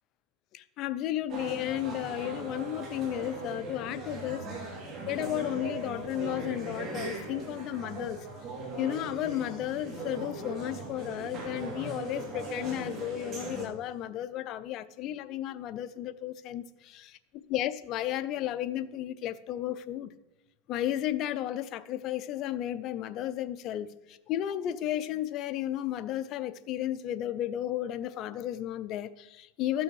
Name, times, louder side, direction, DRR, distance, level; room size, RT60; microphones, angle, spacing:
voice 1, 0.5-4.5 5.1-8.3 8.8-17.2 17.5-20.1 20.7-29.8, left 12 dB, 40° left, 0.5 m, -33 dB
sound 1, 1.3-13.7, right 2 dB, 30° right, 2.3 m, -39 dB
13.0 x 6.2 x 4.8 m
supercardioid pair, 140°, 0 cm